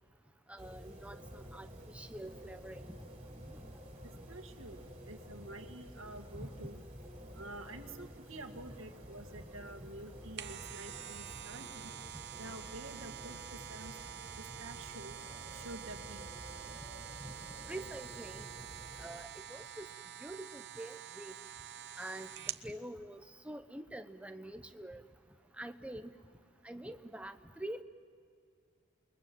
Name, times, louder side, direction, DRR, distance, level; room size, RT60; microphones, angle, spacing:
voice 1, 0.5-1.7 1.9-2.8 3.5-3.6 6.3-6.5 17.2-17.3 17.7-18.4 19.0-19.9 20.2-21.3 22.0-22.3 22.6-25.0 25.6-26.1 26.6-27.8, right 1 dB, 5° right, 8 dB, 0.9 m, -45 dB
sound 1, 0.6-19.1, equal, 30° right, 4.8 m, -51 dB
voice 2, 4.3-4.8 5.1-6.8 7.3-11.9 12.4-14.0 14.4-15.1 15.5-16.3, right 1 dB, 75° right, 5 dB, 2.0 m, -49 dB
sound 2, 10.1-22.7 23.1-23.2, right 10 dB, 55° right, 0.9 m, -47 dB
28.5 x 22.5 x 7.7 m, 2.3 s
head